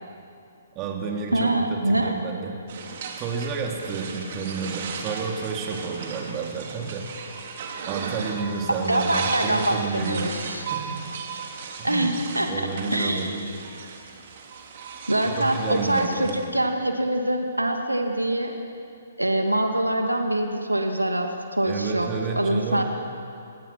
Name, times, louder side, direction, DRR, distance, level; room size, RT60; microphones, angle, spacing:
voice 1, 0.7-2.6 3.2-7.1 7.9-10.3 10.7-11.0 11.8-12.1 12.5-13.5 13.7-13.9 15.3-16.3 21.6-22.8, right 5 dB, 25° right, 1 dB, 3.3 m, -30 dB
voice 2, 1.3-2.1 8.8-10.6 11.8-13.3 15.1-18.6 19.2-22.1 22.4-22.8, right 1 dB, 90° right, 4 dB, 2.3 m, -24 dB
sound 1, 2.7-16.4, right 5 dB, 45° right, 3.2 m, -36 dB
29.5 x 17.0 x 6.1 m, 2.5 s
figure-of-eight pair, 130°, 0 cm